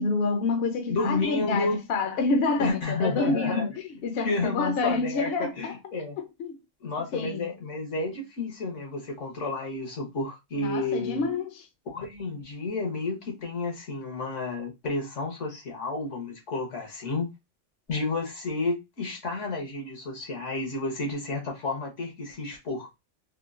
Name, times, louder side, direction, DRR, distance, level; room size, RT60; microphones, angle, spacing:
voice 1, 0.0-5.7 6.2-6.5 7.1-7.5 10.6-11.7, left 3 dB, 60° left, 0.8 m, -28 dB
voice 2, 0.9-1.9 2.6-3.6 4.2-6.2 6.8-11.3 11.9-17.3 17.9-22.9, left 3 dB, 80° left, 1.4 m, -31 dB
3.6 x 2.3 x 2.4 m
omnidirectional pair, 1.2 m